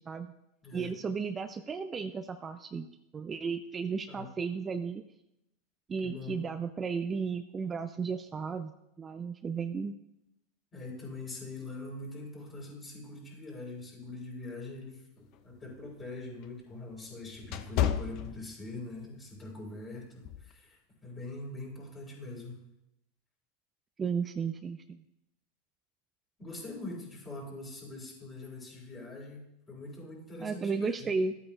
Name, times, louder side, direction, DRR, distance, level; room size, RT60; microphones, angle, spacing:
voice 1, 0.7-2.9 3.1-5.0 5.9-8.7 9.0-9.9 24.0-25.0 30.4-31.4, right 5 dB, 25° right, 9 dB, 0.4 m, -34 dB
voice 2, 6.0-6.4 10.7-15.0 15.4-22.6 26.4-31.1, left 2 dB, 25° left, -3 dB, 4.0 m, -43 dB
sound 1, 15.2-19.0 19.4-19.6 20.2-20.5, left 10 dB, 55° left, 0.6 m, -33 dB
13.0 x 8.4 x 2.4 m, 0.86 s
hypercardioid pair, 110°, 0 cm